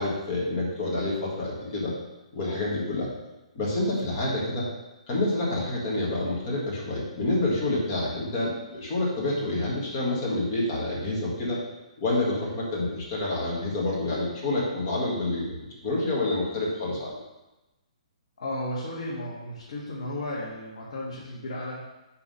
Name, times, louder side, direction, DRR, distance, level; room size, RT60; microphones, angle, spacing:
voice 1, 0.0-1.9 2.3-3.1 3.5-4.7 5.1-11.6 12.0-15.6 15.8-17.2, left 2 dB, 25° left, -4 dB, 1.6 m, -28 dB
voice 2, 18.4-21.8, left 1 dB, 55° left, -6 dB, 1.5 m, -34 dB
5.6 x 4.5 x 5.5 m, 1.0 s
hypercardioid pair, 175°, 4 cm